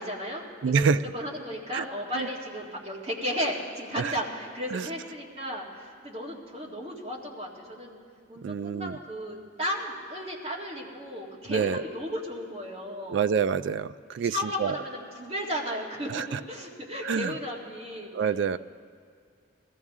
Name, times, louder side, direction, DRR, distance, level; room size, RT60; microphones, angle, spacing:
voice 1, 0.0-8.0 8.3-13.2 14.2-18.1, equal, 30° right, -3 dB, 1.9 m, -34 dB
voice 2, 0.6-1.0 1.7-1.8 2.1-2.3 4.0-4.1 4.7-4.9 8.4-9.0 11.5-11.8 13.1-14.7 16.1-16.4 17.0-17.3 18.1-18.6, right 6 dB, 80° right, 13 dB, 0.3 m, -27 dB
20.5 x 14.5 x 3.6 m, 2.2 s
head